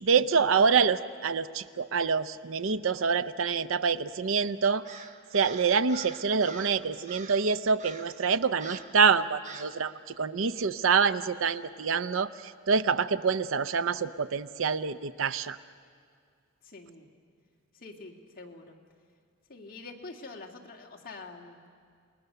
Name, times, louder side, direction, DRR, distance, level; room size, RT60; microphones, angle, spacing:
voice 1, 0.0-4.8 5.3-15.6, right 5 dB, 65° right, 14 dB, 0.6 m, -26 dB
Crow, 4.8-6.8 7.1-7.5 7.8-8.2 8.6-9.0 9.4-9.8, right 4 dB, 35° right, 1.2 m, -45 dB
voice 2, 16.6-17.1 17.7-18.8 19.5-21.6, left 3 dB, 40° left, 1 dB, 2.1 m, -45 dB
28.5 x 20.0 x 6.7 m, 2.1 s
head